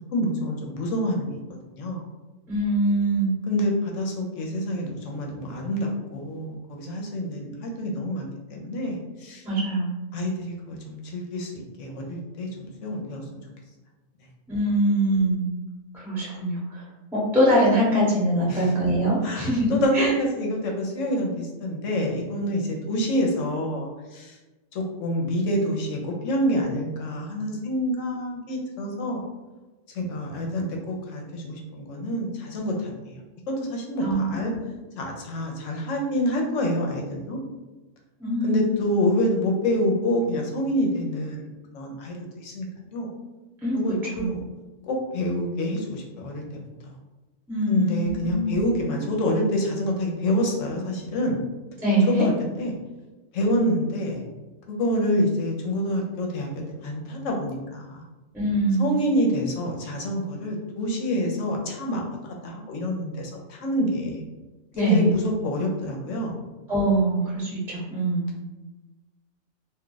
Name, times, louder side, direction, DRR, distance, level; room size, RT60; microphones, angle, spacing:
voice 1, 0.1-1.3 1.7-2.0 3.5-9.4 10.1-13.2 18.5-18.7 19.2-24.4 24.7-29.3 29.9-33.2 33.7-34.5 35.0-37.4 38.4-41.5 41.7-43.1 43.7-44.4 44.9-46.6 46.8-46.9 47.7-51.4 52.2-52.7 53.3-54.2 54.7-56.5 56.8-58.0 58.8-64.2 64.8-66.4, equal, 75° left, 0 dB, 1.0 m, -27 dB
voice 2, 2.5-3.3 9.4-9.9 14.5-15.5 15.9-16.8 17.1-20.1 34.0-34.6 38.2-38.8 43.6-44.3 47.5-48.6 51.8-52.3 58.3-58.9 64.7-65.1 66.7-68.3, right 1 dB, ahead, -7 dB, 0.7 m, -23 dB
2.5 x 2.3 x 3.8 m, 1.1 s
omnidirectional pair, 1.3 m